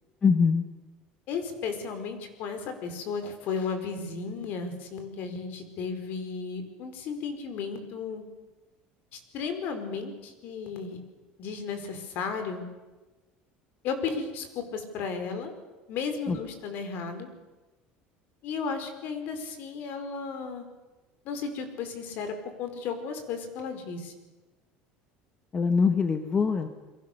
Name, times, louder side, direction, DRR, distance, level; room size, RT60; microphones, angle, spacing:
voice 1, 0.2-0.6 16.3-16.4 25.5-26.7, left 5 dB, 25° left, 7 dB, 1.4 m, -23 dB
voice 2, 1.3-8.2 9.1-11.0 11.4-12.6 13.8-15.5 15.9-17.3 18.4-20.7 21.2-24.1, left 5 dB, 55° left, 7 dB, 4.7 m, -34 dB
29.0 x 22.5 x 6.8 m, 1.2 s
cardioid pair, 150°, 4 cm